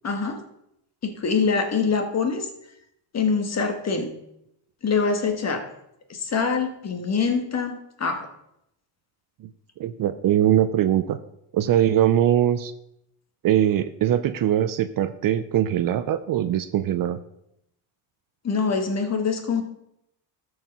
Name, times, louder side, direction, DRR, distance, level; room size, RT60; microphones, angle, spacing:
voice 1, 0.0-0.4 1.0-2.5 3.1-4.1 4.8-5.7 6.1-8.3 18.4-19.6, left 5 dB, 30° left, 7 dB, 1.5 m, -24 dB
voice 2, 9.8-11.2 11.5-12.7 13.4-17.2, right 11 dB, 45° right, 12 dB, 0.6 m, -21 dB
13.0 x 4.8 x 5.3 m, 0.80 s
cardioid pair, 115°, 48 cm